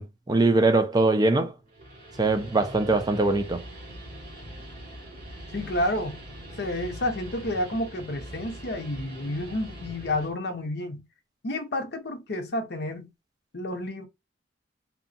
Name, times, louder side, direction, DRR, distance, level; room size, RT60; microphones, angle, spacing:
voice 1, 0.0-1.5 2.2-3.6, right 2 dB, 20° right, 0.4 m, -22 dB
Guitar, 1.6-10.3, equal, 50° right, 1.6 m, -42 dB
voice 2, 5.5-6.2 6.6-11.0 11.4-13.1 13.5-14.1, left 1 dB, 60° left, 0.7 m, -30 dB
2.8 x 2.3 x 2.6 m
head